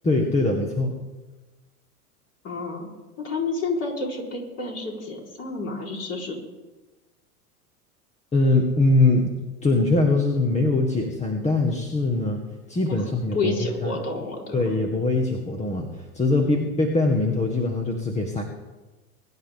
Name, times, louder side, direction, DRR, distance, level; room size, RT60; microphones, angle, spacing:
voice 1, 0.0-0.9 8.3-9.4 9.6-12.4 12.7-13.5 13.8-13.9 14.5-18.4, left 2 dB, 15° left, 3 dB, 1.5 m, -22 dB
voice 2, 2.4-2.9 3.2-6.4 12.9-13.0 13.3-14.6, left 3 dB, 35° left, -2 dB, 4.2 m, -29 dB
22.0 x 10.5 x 3.6 m, 1.2 s
hypercardioid pair, 105°, 46 cm